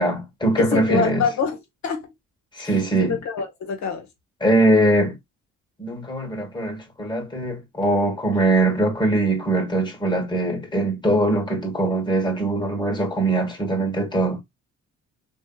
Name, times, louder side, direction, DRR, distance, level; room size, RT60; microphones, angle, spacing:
voice 1, 0.0-1.2 2.5-3.2 4.4-5.2 5.8-14.4, right 2 dB, 15° left, 1.3 m, -22 dB
voice 2, 0.6-1.6 1.8-2.1 2.6-4.1, left 6 dB, 65° left, 1.2 m, -25 dB
3.5 x 2.6 x 2.3 m
cardioid pair, 90°, 30 cm